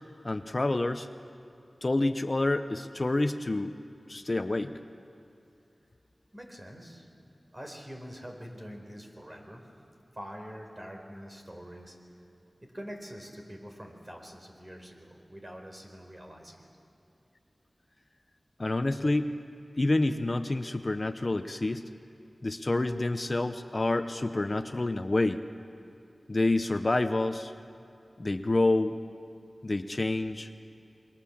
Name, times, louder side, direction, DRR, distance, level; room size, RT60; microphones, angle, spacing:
voice 1, 0.2-1.1 1.8-3.7 4.1-4.7 18.6-19.3 19.8-21.9 22.4-25.4 26.3-27.5 28.2-29.0 29.6-30.5, left 2 dB, 40° left, 9 dB, 0.8 m, -28 dB
voice 2, 6.3-7.1 7.5-9.6 10.1-12.0 12.6-16.7, equal, 30° right, 2 dB, 4.4 m, -45 dB
27.5 x 23.0 x 7.3 m, 2.7 s
wide cardioid pair, 70°, 0 cm